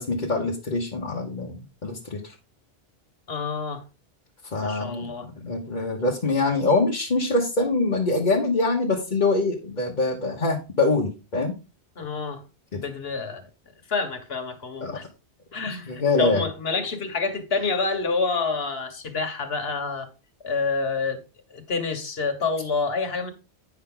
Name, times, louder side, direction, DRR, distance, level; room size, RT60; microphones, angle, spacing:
voice 1, 0.0-2.2 4.5-11.5 12.7-12.8 14.8-15.0 15.7-16.4, left 3 dB, 40° left, 1.2 m, -24 dB
voice 2, 3.3-3.8 4.6-5.3 12.0-12.4 12.7-13.5 13.9-15.0 15.5-20.1 20.4-21.2 21.5-23.3, left 4 dB, 60° left, 1.6 m, -28 dB
9.4 x 6.0 x 3.8 m
omnidirectional pair, 1.2 m